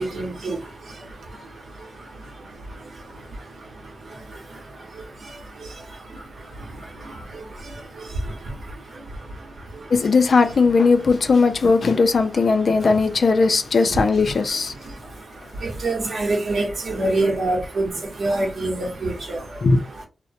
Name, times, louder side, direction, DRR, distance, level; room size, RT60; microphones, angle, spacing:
voice 1, 0.1-0.5 15.6-17.9 18.2-19.4, right 2 dB, 70° right, 0.9 m, -24 dB
voice 2, 9.9-14.7 19.6-19.8, left 4 dB, 60° left, 0.3 m, -18 dB
2.7 x 2.0 x 2.6 m
wide cardioid pair, 105°, 0 cm